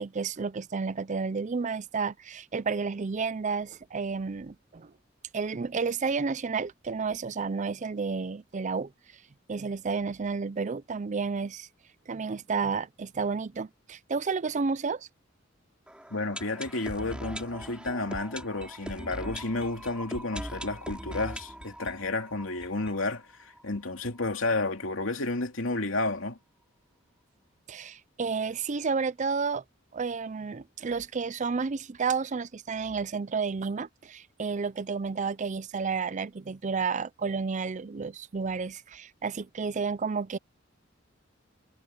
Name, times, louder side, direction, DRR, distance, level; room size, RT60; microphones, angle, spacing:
voice 1, 0.0-4.9 5.3-8.9 9.5-11.7 12.1-15.1 27.7-29.6 29.9-40.4, right 5 dB, 40° right, 0.5 m, -31 dB
sound 1, 15.9-23.6 23.9-24.0 24.2-24.3 24.8-24.9, equal, 5° right, 3.0 m, -41 dB
voice 2, 16.1-26.4, left 2 dB, 90° left, 2.7 m, -31 dB
head